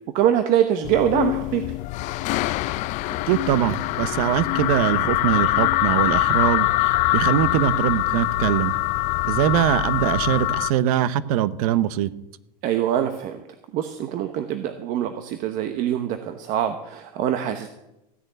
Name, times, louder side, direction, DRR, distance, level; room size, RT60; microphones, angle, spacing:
voice 1, 0.1-1.6 12.6-13.4 13.7-17.7, right 10 dB, 40° right, 8 dB, 1.0 m, -24 dB
sound 1, 0.8-10.7, left 18 dB, 40° left, 0.5 m, -23 dB
sound 2, 2.8-10.5, left 8 dB, 65° left, 2.0 m, -38 dB
voice 2, 3.3-8.7 9.3-12.1, right 11 dB, 65° right, 16 dB, 0.9 m, -22 dB
15.5 x 6.6 x 9.2 m, 0.91 s
supercardioid pair, 150°, 20 cm